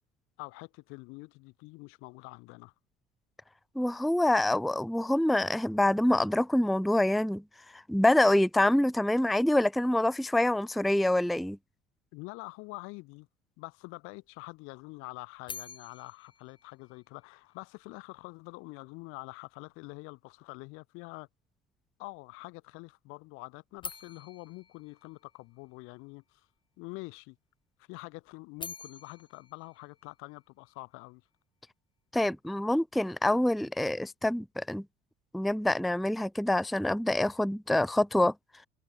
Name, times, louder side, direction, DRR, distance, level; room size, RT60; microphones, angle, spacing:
voice 1, 0.4-2.7 12.1-13.3 13.6-21.3 22.0-26.5 26.8-27.4 27.8-31.2, left 26 dB, 85° left, 3.9 m, -46 dB
voice 2, 3.8-7.4 7.7-11.6 32.1-34.8 35.3-38.3, left 1 dB, ahead, 0.4 m, -26 dB
sound 1, 15.5-17.6 23.8-25.9 28.3-30.7, left 5 dB, 25° left, 1.7 m, -47 dB
cardioid pair, 120°, 21 cm